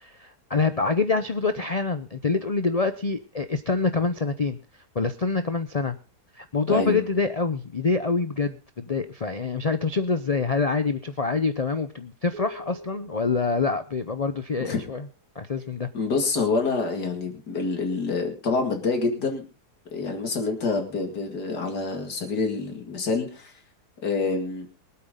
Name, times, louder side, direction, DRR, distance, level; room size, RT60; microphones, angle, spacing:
voice 1, 0.0-4.6 4.9-6.0 6.3-15.1 15.3-15.9, left 4 dB, 40° left, 10 dB, 0.5 m, -26 dB
voice 2, 6.7-7.0 14.6-14.8 15.9-19.4 19.9-23.5 24.0-24.7, left 4 dB, 90° left, 3 dB, 2.8 m, -27 dB
sound 1, 12.3-14.9, left 1 dB, 80° right, 2.7 m, -46 dB
23.5 x 8.6 x 3.7 m, 0.32 s
omnidirectional pair, 1.7 m